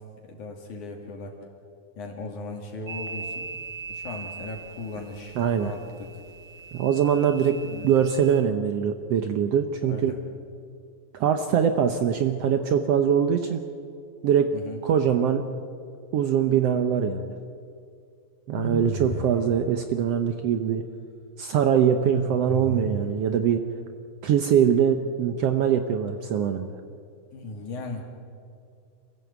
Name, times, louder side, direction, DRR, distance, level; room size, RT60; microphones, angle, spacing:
voice 1, 0.2-1.3 2.0-3.5 3.9-6.1 7.7-7.9 9.9-10.1 14.5-14.8 27.3-28.1, left 3 dB, 60° left, 1 dB, 3.5 m, -37 dB
sound 1, 2.9-8.4, right 4 dB, 60° right, 1.4 m, -40 dB
voice 2, 5.3-5.7 6.7-7.6 7.8-10.1 11.1-13.6 14.2-14.5 14.8-15.4 16.1-17.3 18.5-20.8 21.4-23.6 24.2-26.7, right 8 dB, 85° right, 7 dB, 1.3 m, -23 dB
sound 2, 18.5-19.4 22.0-23.2, right 1 dB, 20° right, 4.9 m, -32 dB
27.5 x 15.5 x 8.2 m, 2.4 s
omnidirectional pair, 4.0 m